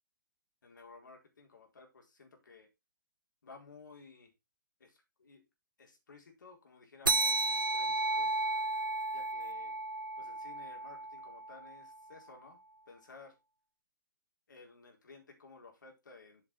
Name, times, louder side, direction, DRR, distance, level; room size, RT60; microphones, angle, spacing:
voice 1, 0.6-2.7 3.4-4.3 4.8-5.4 5.8-8.3 9.1-9.8 10.2-12.6 12.9-13.3 14.5-16.4, left 4 dB, 70° left, 2 dB, 4.2 m, -55 dB
sound 1, 7.1-12.0, right 2 dB, 85° right, 0.6 m, -33 dB
8.0 x 5.9 x 4.6 m, 0.23 s
figure-of-eight pair, 120°, 11 cm